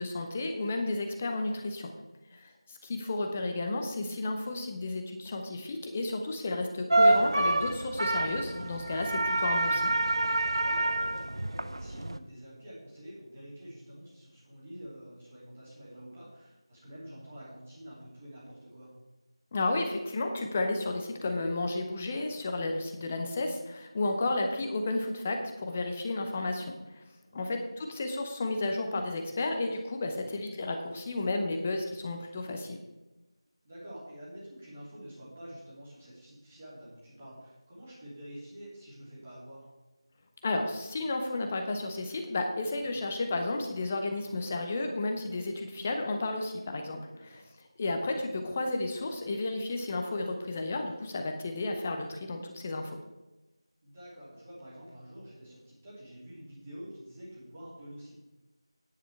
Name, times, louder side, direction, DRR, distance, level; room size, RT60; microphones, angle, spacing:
voice 1, 0.0-1.9 2.3-9.9 19.5-26.7 26.9-27.0 27.3-32.8 40.4-47.4 47.8-52.9, left 2 dB, 15° left, 4 dB, 0.7 m, -32 dB
sound 1, 6.9-12.2, right 2 dB, 60° right, 0.5 m, -27 dB
voice 2, 10.6-18.9 27.3-27.4 30.0-30.2 33.6-39.6 42.8-43.0 47.2-47.5 53.8-58.2, equal, 20° right, -6 dB, 3.0 m, -48 dB
9.8 x 9.1 x 4.5 m, 1.1 s
figure-of-eight pair, 170°, 3 cm